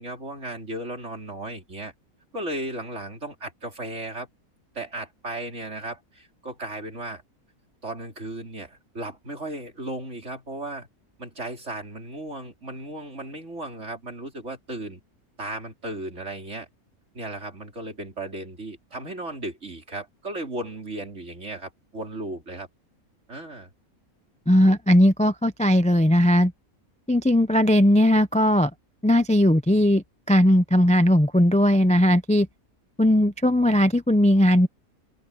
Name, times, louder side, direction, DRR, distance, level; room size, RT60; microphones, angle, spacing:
voice 1, 0.0-1.9 2.3-4.3 4.7-7.2 7.8-10.9 11.2-15.0 15.4-16.7 17.1-22.7 23.3-23.7, right 1 dB, 50° right, 4.7 m, -35 dB
voice 2, 24.5-26.5 27.1-28.7 29.0-32.5 33.0-34.7, equal, 10° left, 0.5 m, -18 dB
open air
omnidirectional pair, 1.5 m